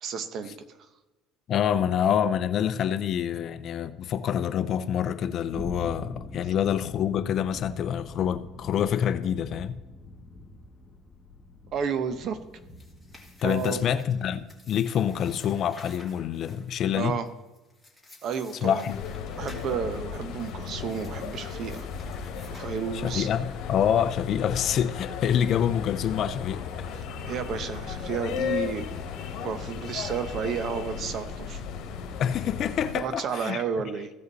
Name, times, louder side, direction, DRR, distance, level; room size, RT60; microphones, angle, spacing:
voice 1, 0.0-0.6 11.7-12.4 13.4-13.9 17.0-17.3 18.2-18.8 19.4-21.9 22.5-23.3 27.2-28.9 29.4-31.6 32.9-34.1, right 7 dB, 50° right, 0.9 m, -31 dB
voice 2, 1.5-9.7 13.4-17.2 18.6-19.0 22.9-27.0 32.2-33.6, left 9 dB, 50° left, 0.6 m, -26 dB
sound 1, 5.5-14.4, left 2 dB, 20° left, 1.7 m, -44 dB
sound 2, 12.5-23.4, left 2 dB, ahead, 2.7 m, -53 dB
sound 3, 18.9-33.0, left 7 dB, 70° left, 1.5 m, -35 dB
16.0 x 5.4 x 4.1 m
cardioid pair, 120°, 0 cm